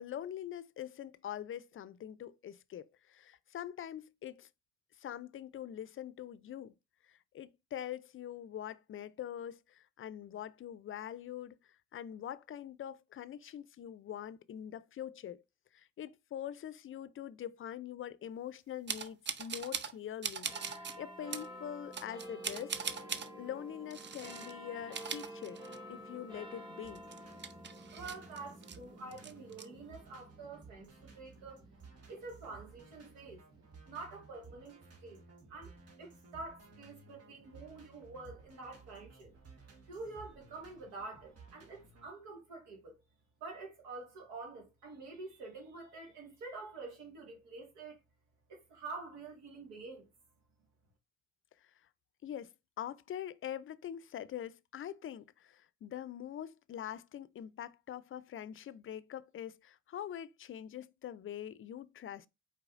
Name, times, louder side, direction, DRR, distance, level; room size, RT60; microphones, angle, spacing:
voice 1, 0.0-4.5 5.0-6.7 7.1-11.6 11.9-15.4 15.7-22.8 23.4-25.6 25.9-27.0 52.2-52.5 52.8-62.3, left 10 dB, 45° left, 0.4 m, -44 dB
sound 1, 18.9-20.0 20.2-21.0 21.3-21.5 21.9-23.3 23.9-24.5 24.8-26.0 26.3-26.4 26.9-28.8 29.1-29.6, right 6 dB, 40° right, 0.6 m, -40 dB
sound 2, 20.4-33.3 34.0-34.1, equal, 15° right, 1.8 m, -50 dB
sound 3, 26.8-42.1, right 4 dB, 55° right, 1.6 m, -57 dB
voice 2, 27.9-31.6 32.1-33.4 33.9-35.2 35.5-39.3 39.9-43.0 43.4-48.0 48.5-50.1, right 3 dB, 85° right, 1.8 m, -47 dB
4.7 x 4.5 x 2.5 m
supercardioid pair, 55°, 29 cm